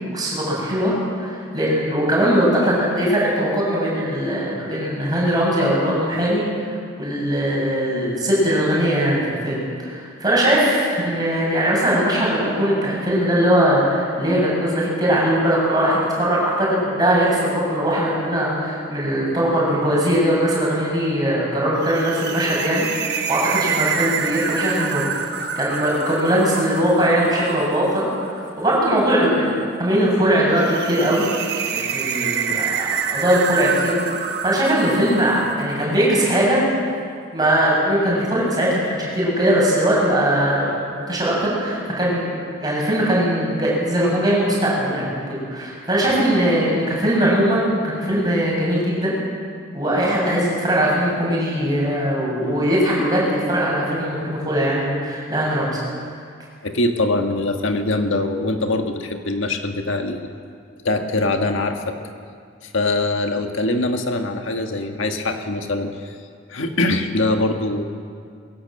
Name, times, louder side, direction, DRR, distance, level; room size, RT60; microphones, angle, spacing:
voice 1, 0.1-22.9 23.3-31.3 31.7-36.6 37.3-49.2 49.7-55.8, equal, 20° right, -5 dB, 7.3 m, -20 dB
sound 1, 21.8-36.2, right 7 dB, 50° right, 1.3 m, -28 dB
voice 2, 56.6-60.3 60.8-62.0 62.6-66.2 66.5-67.8, left 2 dB, 65° left, 4 dB, 1.7 m, -23 dB
21.0 x 17.5 x 7.7 m, 2.2 s
head